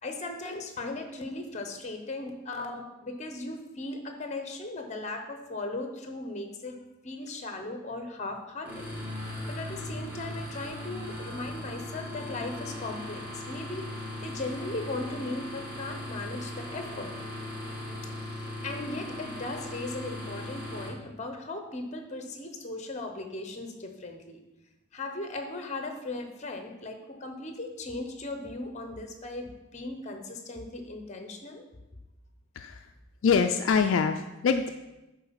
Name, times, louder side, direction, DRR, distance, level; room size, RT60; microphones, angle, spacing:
voice 1, 0.0-6.8 7.0-8.9 9.2-13.9 14.2-17.1 18.2-24.4 24.9-31.6, left 2 dB, 30° left, 5 dB, 0.8 m, -38 dB
sound 1, 8.7-20.9, left 1 dB, 10° right, 1.4 m, -38 dB
voice 2, 32.6-32.9 33.2-34.7, left 6 dB, 65° left, 6 dB, 0.3 m, -24 dB
8.7 x 3.8 x 5.8 m, 1.0 s
head